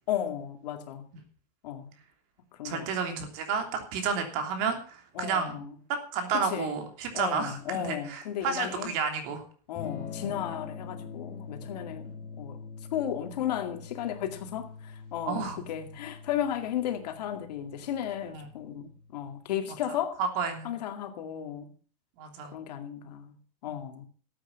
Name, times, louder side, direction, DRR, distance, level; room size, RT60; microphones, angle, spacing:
voice 1, 0.1-1.1 1.6-1.9 2.6-2.9 5.2-5.7 6.3-6.8 7.1-8.9 9.7-12.6 12.9-20.2 20.6-21.7 22.5-23.4 23.6-24.1, left 10 dB, 75° left, 2.2 m, -34 dB
voice 2, 2.6-5.6 6.1-9.4 10.2-10.3 15.3-15.6 18.3-18.4 20.2-20.7 22.2-22.5 23.7-23.8, right 5 dB, 50° right, 3.1 m, -31 dB
Electric guitar / Strum, 9.8-19.5, left 6 dB, 35° left, 2.8 m, -44 dB
14.0 x 8.6 x 5.7 m
supercardioid pair, 155°, 21 cm